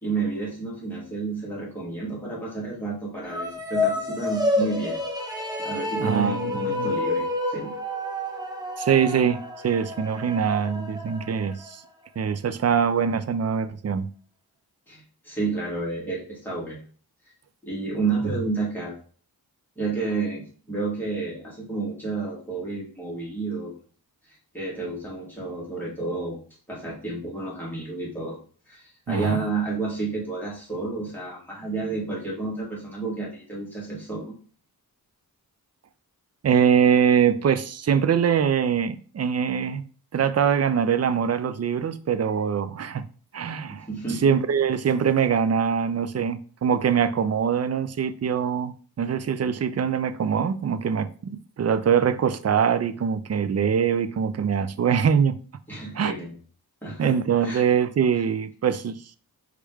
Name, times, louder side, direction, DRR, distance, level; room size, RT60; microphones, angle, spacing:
voice 1, 0.0-5.0 5.6-7.7 14.9-16.8 17.6-19.0 19.8-20.4 20.7-23.7 24.5-26.4 26.7-28.4 28.7-34.4 43.7-44.2 55.7-56.4 56.8-57.2 57.4-57.6, right 3 dB, 5° left, 2.4 m, -30 dB
sound 1, 3.2-11.7, left 2 dB, 10° right, 0.9 m, -29 dB
voice 2, 6.0-6.9 8.8-11.8 12.2-14.1 29.1-29.4 36.4-39.8 40.1-43.0 43.3-43.9 44.2-55.4 55.9-56.1 57.0-59.0, right 7 dB, 45° right, 0.4 m, -23 dB
4.7 x 3.2 x 3.4 m
wide cardioid pair, 95°, 38 cm